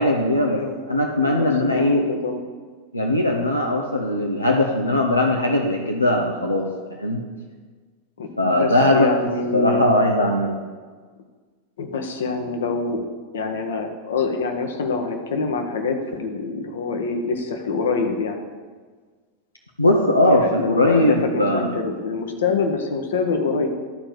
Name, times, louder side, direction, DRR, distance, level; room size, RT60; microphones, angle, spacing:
voice 1, 0.0-0.6 0.9-2.0 2.9-7.2 8.4-9.1 9.5-10.6 19.8-21.7, left 1 dB, 85° left, 0 dB, 0.8 m, -19 dB
voice 2, 1.2-2.4 8.2-9.8 11.8-13.0 13.3-18.4 20.2-23.7, left 4 dB, 65° left, 4 dB, 1.2 m, -25 dB
12.5 x 4.4 x 6.7 m, 1.5 s
figure-of-eight pair, 90°, 0 cm